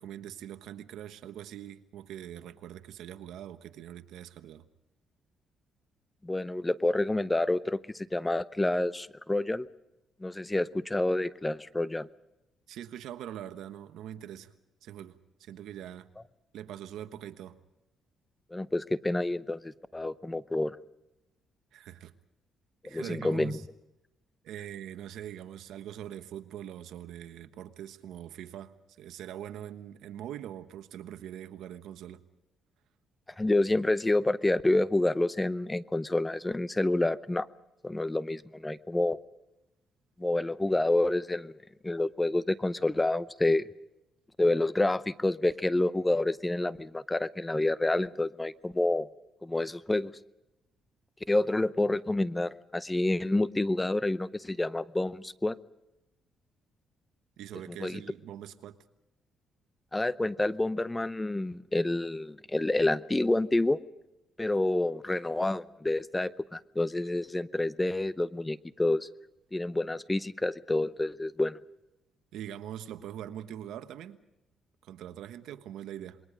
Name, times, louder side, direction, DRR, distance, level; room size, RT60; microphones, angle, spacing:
voice 1, 0.0-4.6 12.7-14.5 14.8-16.1 16.5-17.6 21.7-22.1 22.8-23.6 24.4-32.2 57.4-58.8 72.3-74.2 74.8-76.2, right 11 dB, 85° right, 1.3 m, -43 dB
voice 2, 6.2-9.7 10.2-12.1 18.5-20.8 22.8-23.6 33.4-37.5 37.8-39.2 40.2-41.5 41.8-43.7 44.4-49.1 49.4-50.1 51.3-55.6 57.8-58.0 59.9-63.8 64.4-69.1 69.5-71.6, left 2 dB, 15° left, 0.7 m, -28 dB
27.5 x 22.0 x 5.1 m
cardioid pair, 90°, 0 cm